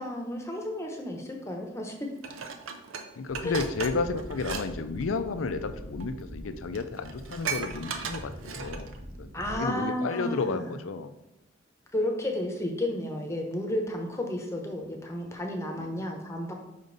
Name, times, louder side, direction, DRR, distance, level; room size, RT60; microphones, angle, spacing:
voice 1, 0.0-1.9 3.4-3.6 9.3-10.7 11.9-16.5, left 1 dB, 15° left, 2 dB, 0.8 m, -32 dB
Dishes pots and pans, 2.2-4.7 5.0-5.2 6.0-6.1 6.4-6.5 6.7-9.0 9.4-9.5, right 6 dB, 85° right, 0.6 m, -37 dB
voice 2, 3.2-8.9 9.2-11.1 15.8-16.1, left 4 dB, 85° left, 10 dB, 0.5 m, -32 dB
sound 1, 3.3-9.6, equal, 45° right, 1.1 m, -43 dB
5.1 x 5.1 x 4.0 m, 0.89 s
head